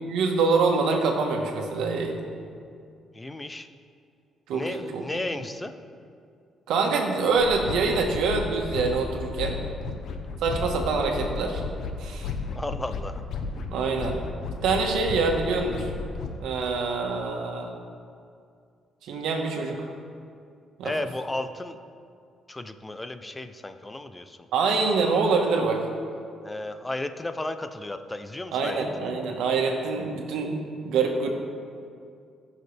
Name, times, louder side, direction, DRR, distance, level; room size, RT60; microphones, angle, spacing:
voice 1, 0.0-2.2 4.5-5.0 6.7-9.6 10.4-11.6 12.0-12.3 13.7-14.2 14.6-15.9 16.4-17.7 19.0-19.9 20.8-20.9 24.5-25.9 28.5-31.3, right 4 dB, 85° right, 2 dB, 1.5 m, -25 dB
voice 2, 3.1-3.7 4.5-5.7 12.5-13.2 20.8-21.8 22.5-24.4 26.4-29.1, left 2 dB, 15° left, 9 dB, 0.7 m, -34 dB
sound 1, 7.4-16.4, left 4 dB, 70° left, 1.0 m, -34 dB
19.0 x 6.5 x 3.5 m, 2.3 s
cardioid pair, 90°, 0 cm